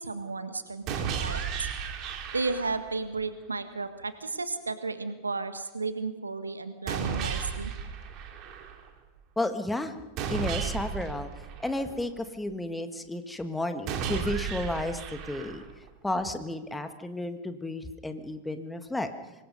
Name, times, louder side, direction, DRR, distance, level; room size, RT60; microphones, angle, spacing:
voice 1, 0.0-1.7 2.3-7.7, right 3 dB, 80° right, 10 dB, 1.6 m, -33 dB
sound 1, 0.9-2.9 6.9-8.9 10.2-12.2 13.9-15.9, right 7 dB, 40° right, 2.7 m, -34 dB
voice 2, 9.4-9.9 10.3-11.3 11.6-15.6 16.0-19.1, left 1 dB, 5° left, 8 dB, 1.6 m, -32 dB
25.0 x 20.5 x 5.3 m, 1.0 s
figure-of-eight pair, 90°, 0 cm